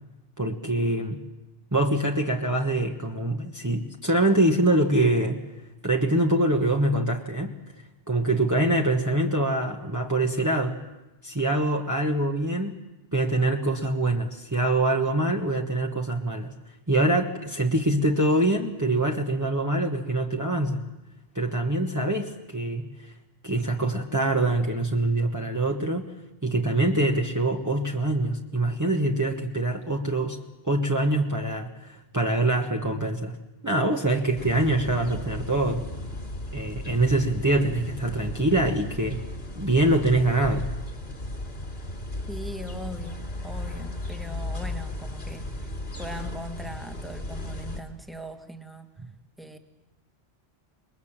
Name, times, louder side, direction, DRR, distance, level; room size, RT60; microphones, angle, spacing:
voice 1, 0.4-1.2 1.7-5.4 5.8-7.5 8.1-10.8 11.2-12.8 13.1-16.5 16.9-20.8 21.3-23.1 23.4-26.1 26.4-30.4 30.6-33.4 33.6-35.9 36.5-39.2 39.6-40.7, right 1 dB, 15° right, 0 dB, 1.4 m, -24 dB
sound 1, 34.4-47.8, left 1 dB, 65° left, 2.9 m, -35 dB
voice 2, 42.3-45.5 46.0-48.9 49.4-49.6, equal, ahead, 6 dB, 1.7 m, -40 dB
27.5 x 21.5 x 7.5 m, 1.0 s
omnidirectional pair, 1.1 m